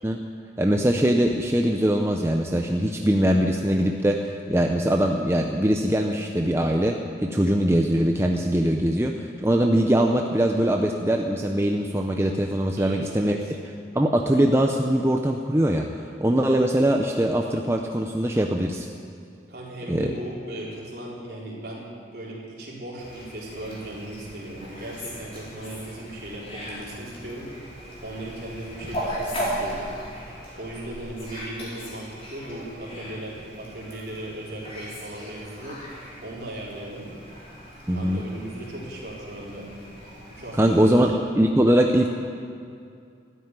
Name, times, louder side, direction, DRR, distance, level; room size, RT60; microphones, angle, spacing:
voice 1, 0.6-13.4 13.9-15.9 16.2-18.9 19.9-20.1 37.9-38.2 40.6-42.1, right 1 dB, 15° right, 2 dB, 0.6 m, -22 dB
voice 2, 12.8-13.5 19.5-27.5 28.0-29.8 30.6-35.8 36.2-37.1 37.9-39.7 40.3-41.1, right 1 dB, 60° right, -5 dB, 3.9 m, -37 dB
Fowl, 23.0-41.0, equal, 30° left, 4.2 m, -38 dB
13.5 x 9.5 x 9.6 m, 2.4 s
head